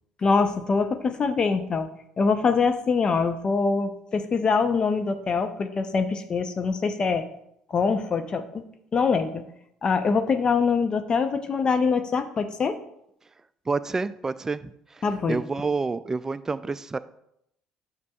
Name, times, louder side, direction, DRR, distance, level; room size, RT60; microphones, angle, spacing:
voice 1, 0.2-1.9 2.2-7.2 7.7-8.7 8.9-9.4 9.8-12.8 15.0-15.4, left 5 dB, 40° left, 9 dB, 0.7 m, -24 dB
voice 2, 13.7-15.0 15.3-17.0, right 4 dB, 20° right, 14 dB, 0.4 m, -28 dB
9.4 x 6.1 x 2.4 m, 0.78 s
hypercardioid pair, 65°, 2 cm